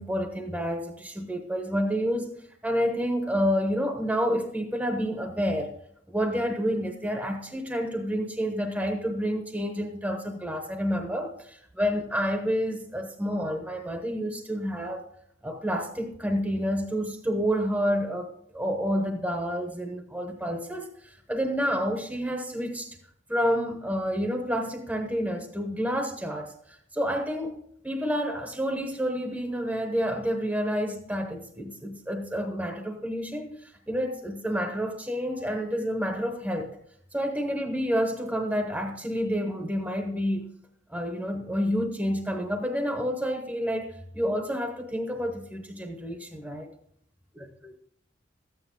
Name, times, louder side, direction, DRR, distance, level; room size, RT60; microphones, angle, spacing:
voice 1, 0.0-2.4 2.6-5.7 6.1-15.0 15.4-23.0 23.3-36.8 37.1-40.6 40.9-43.9 44.1-46.7 47.6-47.7, equal, 10° right, 4 dB, 0.9 m, -29 dB
13.5 x 9.3 x 3.8 m, 0.69 s
head